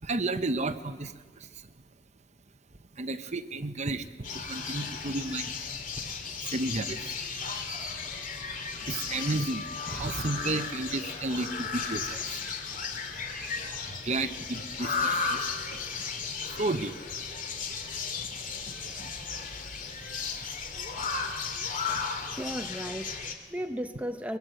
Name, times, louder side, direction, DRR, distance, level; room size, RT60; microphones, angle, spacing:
voice 1, 0.0-1.7 2.9-5.5 6.4-7.2 8.5-13.0 13.8-16.0 16.5-17.1 17.6-17.7 18.2-19.5 20.1-20.3 21.0-21.5 21.8-22.1, right 2 dB, 40° right, 1.0 m, -34 dB
sound 1, 4.2-23.3, left 5 dB, 45° left, 2.4 m, -35 dB
voice 2, 22.4-24.4, equal, 10° right, 0.8 m, -35 dB
24.0 x 22.5 x 7.8 m
head